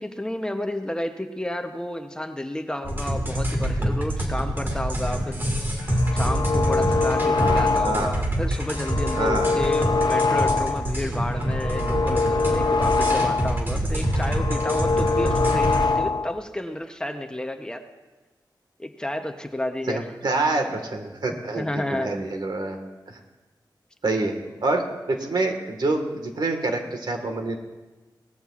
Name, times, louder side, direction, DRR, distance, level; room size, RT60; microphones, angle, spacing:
voice 1, 0.0-5.4 6.1-17.8 18.8-20.1 20.7-20.8 21.6-22.2, left 1 dB, 10° left, 5 dB, 0.8 m, -31 dB
sound 1, 2.8-15.9, equal, 25° right, 2.0 m, -26 dB
sound 2, 5.8-8.2 8.6-10.9 11.3-13.6 14.0-16.4, left 3 dB, 65° left, 0.5 m, -24 dB
voice 2, 7.4-8.1 9.2-9.5 19.9-22.8 24.0-24.3 24.6-27.6, right 2 dB, 70° right, 4 dB, 1.7 m, -26 dB
18.0 x 14.0 x 2.5 m, 1.2 s
wide cardioid pair, 90°, 8 cm